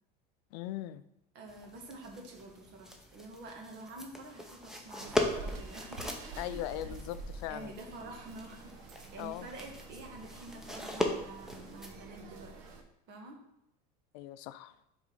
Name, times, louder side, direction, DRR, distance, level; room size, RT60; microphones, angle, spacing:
voice 1, 0.5-1.0 6.4-7.7 9.2-9.5 14.1-14.7, left 14 dB, 75° left, 14 dB, 0.4 m, -39 dB
voice 2, 1.3-6.9 7.5-12.5 13.1-13.4, right 2 dB, 55° right, 2 dB, 1.6 m, -48 dB
sound 1, 1.5-12.0, left 1 dB, ahead, 0.7 m, -39 dB
sound 2, 5.0-12.8, right 2 dB, 80° right, 1.0 m, -47 dB
4.8 x 3.9 x 5.4 m, 0.83 s
supercardioid pair, 125°, 21 cm